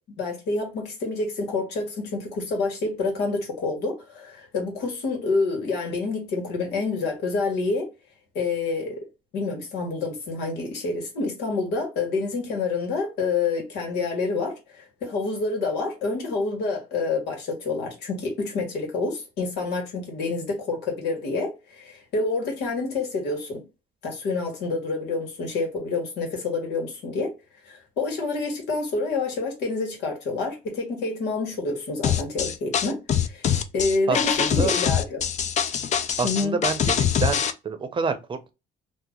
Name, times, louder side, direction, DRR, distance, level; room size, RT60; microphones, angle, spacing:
voice 1, 0.2-7.9 8.3-9.1 9.3-23.6 24.0-27.3 27.6-35.2 36.2-36.6, left 3 dB, 80° left, 1.6 m, -28 dB
sound 1, 32.0-37.5, left 8 dB, 45° left, 0.5 m, -23 dB
voice 2, 34.1-34.7 36.2-38.5, right 5 dB, 30° right, 0.7 m, -28 dB
2.9 x 2.4 x 3.7 m
cardioid pair, 110°, 17 cm